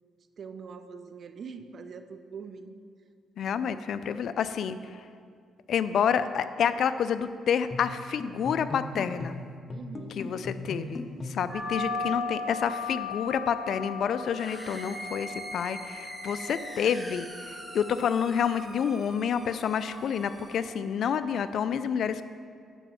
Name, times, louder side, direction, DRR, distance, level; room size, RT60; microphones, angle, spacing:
voice 1, 0.4-2.8 9.7-10.2 11.9-12.3, right 5 dB, 50° right, 10 dB, 0.6 m, -43 dB
voice 2, 3.4-5.1 5.7-9.4 10.2-22.2, left 7 dB, 65° left, 12 dB, 0.4 m, -29 dB
sound 1, 7.7-11.6, left 2 dB, 35° left, 0.8 m, -38 dB
sound 2, 11.5-20.6, left 4 dB, 30° right, 2.4 m, -38 dB
sound 3, 14.3-20.8, right 1 dB, 10° right, 1.1 m, -43 dB
11.0 x 5.1 x 7.1 m, 2.2 s
cardioid pair, 90°, 0 cm